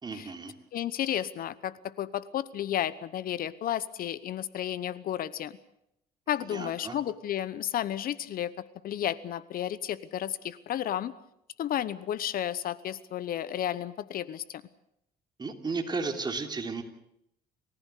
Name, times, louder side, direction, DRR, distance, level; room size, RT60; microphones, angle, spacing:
voice 1, 0.0-0.5 6.5-7.0 15.4-16.8, right 4 dB, 25° right, 5 dB, 3.1 m, -34 dB
voice 2, 0.7-5.6 6.3-8.5 8.8-11.1 11.6-14.6, left 11 dB, 60° left, 18 dB, 1.0 m, -32 dB
29.0 x 15.0 x 8.3 m, 0.78 s
cardioid pair, 110°, 17 cm